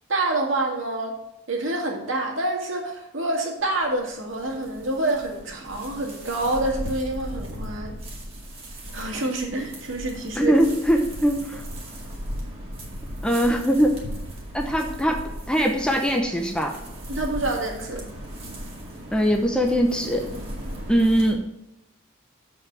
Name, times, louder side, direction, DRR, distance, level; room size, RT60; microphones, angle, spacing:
voice 1, 0.1-1.2 1.5-8.0 8.9-10.5 17.1-18.1, right 2 dB, 70° right, 0 dB, 2.1 m, -27 dB
sound 1, 3.6-21.3, equal, 30° right, 2.0 m, -37 dB
voice 2, 10.3-11.6 13.2-14.0 14.5-16.7 19.1-20.3 20.9-21.5, equal, 5° left, 2 dB, 0.8 m, -21 dB
7.6 x 5.3 x 7.4 m, 0.88 s
head